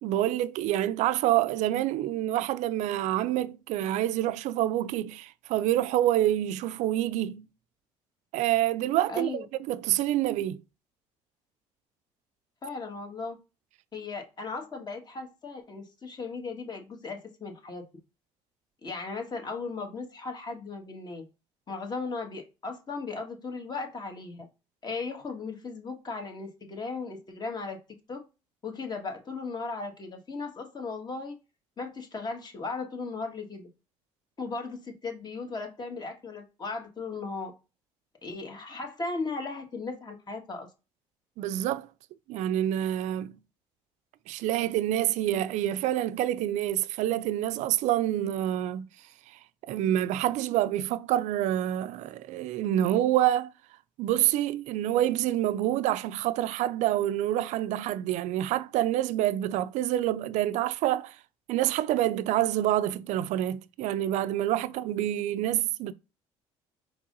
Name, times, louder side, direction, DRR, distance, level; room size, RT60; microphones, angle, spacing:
voice 1, 0.0-7.4 8.3-10.6 41.4-41.9 42.3-43.3 44.3-48.9 49.7-53.5 54.0-61.2 61.5-65.9, right 13 dB, 70° right, 0.4 m, -27 dB
voice 2, 9.1-9.4 12.6-13.4 13.9-17.8 18.8-21.2 21.7-24.5 24.8-27.8 28.1-28.2 28.6-31.3 31.8-33.7 34.4-37.5 38.2-40.7, left 4 dB, 35° left, 1.6 m, -36 dB
4.7 x 3.8 x 2.6 m
supercardioid pair, 80°, 13 cm